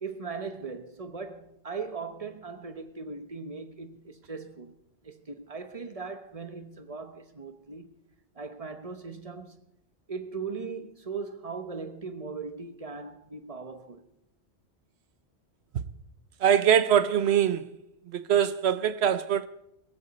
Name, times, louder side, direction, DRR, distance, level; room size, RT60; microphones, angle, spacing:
voice 1, 0.0-4.8 5.0-8.0 8.3-9.6 10.1-14.1, right 4 dB, 35° right, 1.0 m, -39 dB
voice 2, 16.4-17.7 18.1-19.5, right 9 dB, 70° right, 1.0 m, -23 dB
18.0 x 16.5 x 4.2 m
omnidirectional pair, 1.2 m